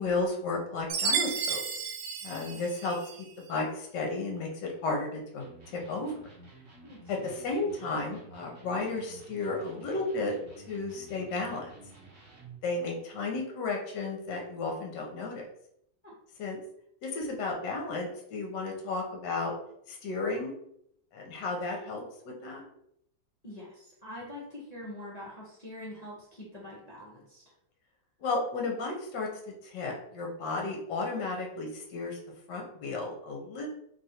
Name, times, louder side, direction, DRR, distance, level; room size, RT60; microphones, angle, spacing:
voice 1, 0.0-1.6 2.2-3.0 3.4-5.4 5.7-6.1 7.1-10.3 10.7-11.7 12.6-15.5 16.4-16.6 17.0-19.5 19.9-20.5 21.1-22.6 28.2-29.3 29.6-32.2 32.5-33.7, left 3 dB, 70° left, 0 dB, 1.3 m, -33 dB
Chime, 0.9-3.2, right 6 dB, 80° right, 1.3 m, -32 dB
voice 2, 2.3-2.6 6.8-7.3 23.4-27.4, left 1 dB, 40° left, -7 dB, 0.5 m, -44 dB
Electric guitar, 5.4-12.7, right 3 dB, 45° right, 0.9 m, -52 dB
3.2 x 2.5 x 4.2 m, 0.73 s
omnidirectional pair, 2.1 m